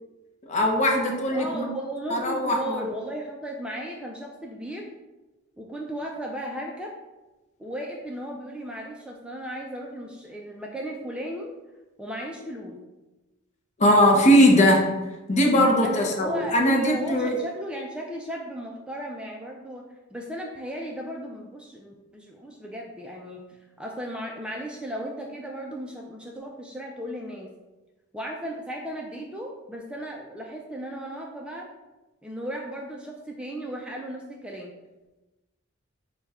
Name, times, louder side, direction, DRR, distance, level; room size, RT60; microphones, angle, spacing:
voice 1, 0.5-1.7 2.1-2.9 13.8-14.9 15.3-17.4, equal, 35° left, 1 dB, 0.7 m, -20 dB
voice 2, 1.2-4.9 5.6-6.9 7.6-11.6 12.0-12.8 15.8-27.5 28.1-31.7 32.2-34.7, equal, 5° right, -1 dB, 0.3 m, -36 dB
5.4 x 2.2 x 3.5 m, 1.1 s
head